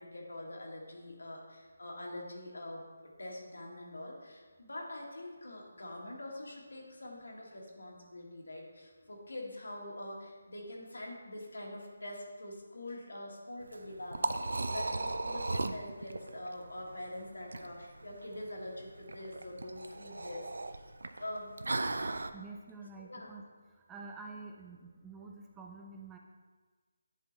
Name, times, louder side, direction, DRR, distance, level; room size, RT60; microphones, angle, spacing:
voice 1, 0.0-20.9 21.2-21.6 23.1-23.3, left 1 dB, 80° left, -1 dB, 1.9 m, -44 dB
Liquid, 13.6-22.3, right 2 dB, 75° right, 0.4 m, -37 dB
voice 2, 22.3-23.4 23.9-26.2, right 4 dB, 10° right, 1 dB, 0.4 m, -48 dB
10.0 x 3.7 x 4.0 m, 1.4 s
figure-of-eight pair, 160°, 0 cm